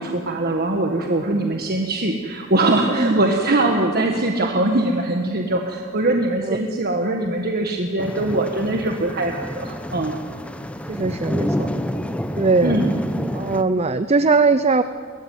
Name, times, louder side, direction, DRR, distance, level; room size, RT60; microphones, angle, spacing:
voice 1, 0.0-10.1 12.6-13.0, right 2 dB, 45° right, 3 dB, 1.5 m, -22 dB
voice 2, 2.9-3.2 6.5-6.6 10.9-11.7 12.4-12.8 13.3-14.8, right 3 dB, 30° right, 12 dB, 0.6 m, -20 dB
sound 1, 8.0-13.6, equal, 5° left, 0.9 m, -28 dB
22.0 x 19.0 x 9.4 m, 2.1 s
head